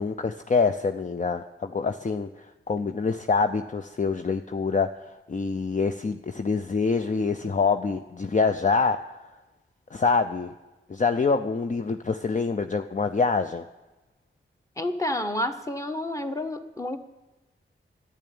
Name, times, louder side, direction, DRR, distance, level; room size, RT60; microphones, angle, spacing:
voice 1, 0.0-2.3 2.7-4.9 5.3-9.0 9.9-10.5 10.9-13.7, left 4 dB, 35° left, 7 dB, 0.6 m, -25 dB
voice 2, 14.8-17.0, left 1 dB, 15° left, 6 dB, 1.4 m, -29 dB
10.5 x 9.4 x 8.8 m, 1.1 s
cardioid pair, 40°, 21 cm